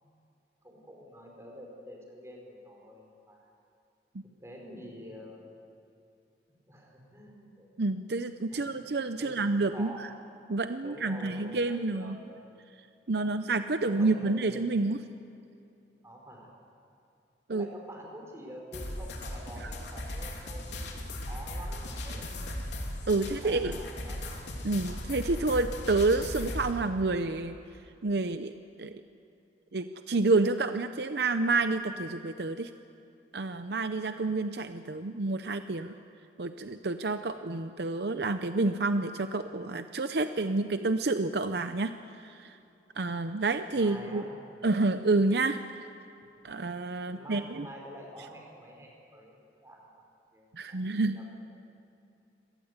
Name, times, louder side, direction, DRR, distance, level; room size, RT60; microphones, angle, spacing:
voice 1, 0.6-3.5 4.4-5.5 6.7-7.7 8.5-8.9 9.2-10.0 10.8-12.1 13.8-14.5 16.0-16.5 17.5-22.8 23.2-24.3 43.7-44.6 47.1-51.3, equal, 15° right, 0 dB, 4.8 m, -47 dB
voice 2, 7.8-10.1 10.5-12.2 13.1-15.0 17.5-17.7 23.1-23.8 24.6-27.6 28.0-28.5 28.8-28.9 29.7-32.7 33.3-35.9 36.4-42.6 43.0-44.3 44.6-45.6 46.4-47.7 50.5-51.2, right 3 dB, 65° right, 9 dB, 0.7 m, -29 dB
sound 1, 18.7-26.7, left 1 dB, 80° left, 3.3 m, -37 dB
25.0 x 18.5 x 8.2 m, 2.6 s
head